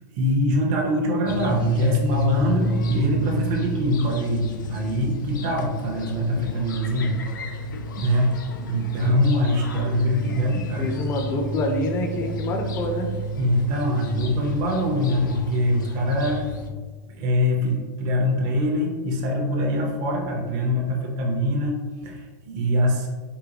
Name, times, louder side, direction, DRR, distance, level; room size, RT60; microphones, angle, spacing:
voice 1, 0.1-7.2 7.5-7.6 8.0-8.4 8.7-10.9 13.4-16.5 17.1-23.1, equal, 40° right, -1 dB, 0.6 m, -23 dB
sound 1, 1.3-16.7, left 1 dB, 85° left, 0.4 m, -30 dB
voice 2, 10.8-13.1, left 1 dB, 25° left, 3 dB, 0.4 m, -26 dB
3.8 x 2.2 x 2.8 m, 1.4 s
supercardioid pair, 145°, 10 cm